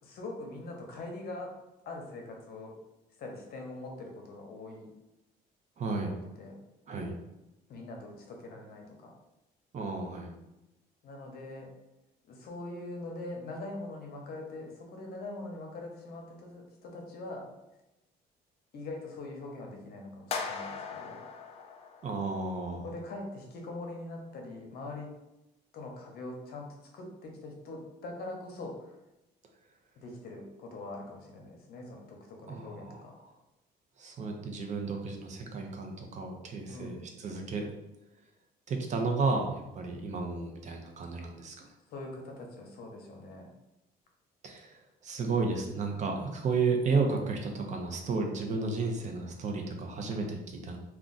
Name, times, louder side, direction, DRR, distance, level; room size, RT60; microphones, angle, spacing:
voice 1, 0.0-1.5 1.9-2.7 3.2-4.9 5.9-6.6 7.7-9.1 11.0-11.7 12.3-17.5 18.7-21.2 22.8-25.1 25.7-26.7 26.9-28.9 30.0-33.2 36.7-37.0 41.9-43.5, left 2 dB, 65° left, 1 dB, 0.7 m, -42 dB
voice 2, 5.8-6.2 6.9-7.1 9.7-10.3 22.0-22.8 32.5-33.0 34.0-37.7 38.7-41.7 44.4-50.8, right 4 dB, 45° right, 2 dB, 0.6 m, -32 dB
sound 1, 20.3-22.5, left 5 dB, 40° left, 0.4 m, -39 dB
2.4 x 2.3 x 3.8 m, 0.95 s
cardioid pair, 110°, 17 cm